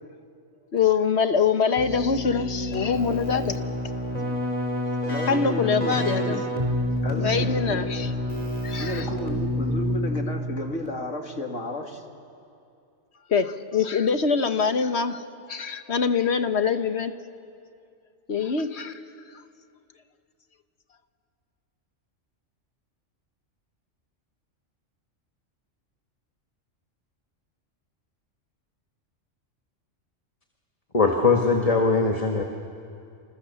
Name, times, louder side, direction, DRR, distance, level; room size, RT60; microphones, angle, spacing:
voice 1, 0.7-3.6 5.3-6.4 7.1-8.1 8.6-9.1 13.3-15.2 15.5-17.1 18.3-19.0, left 6 dB, 60° left, 9 dB, 1.5 m, -24 dB
Keyboard (musical), 1.8-10.5, equal, 30° right, 4.3 m, -28 dB
voice 2, 4.7-6.4 7.0-8.0 8.8-12.0, left 1 dB, 75° left, 3 dB, 2.9 m, -33 dB
voice 3, 30.9-32.4, left 4 dB, 30° left, 2 dB, 1.7 m, -21 dB
29.0 x 29.0 x 7.1 m, 2.5 s
omnidirectional pair, 1.3 m